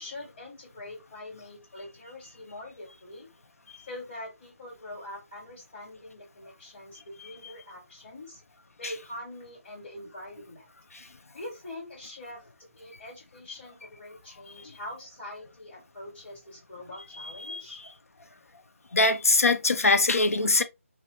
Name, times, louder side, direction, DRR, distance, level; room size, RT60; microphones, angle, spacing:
voice 1, 0.0-3.3 3.9-8.4 8.8-10.7 11.3-12.4 12.8-17.8, left 1 dB, 45° left, 2.0 m, -43 dB
voice 2, 18.9-20.6, left 3 dB, 80° left, 0.5 m, -22 dB
2.9 x 2.3 x 3.2 m
figure-of-eight pair, 160°, 8 cm